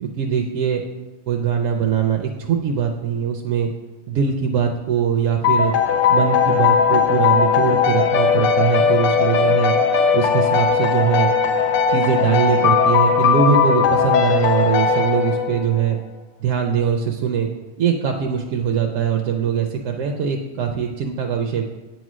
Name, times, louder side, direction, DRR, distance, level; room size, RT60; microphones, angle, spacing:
voice 1, 0.0-0.8 1.3-3.7 4.1-5.7 6.1-9.8 10.1-11.3 11.9-16.0 16.4-17.5 17.8-21.6, right 7 dB, 70° right, 3 dB, 0.9 m, -21 dB
sound 1, 5.4-15.8, left 6 dB, 70° left, 1.0 m, -18 dB
8.9 x 3.1 x 6.0 m, 1.1 s
omnidirectional pair, 1.4 m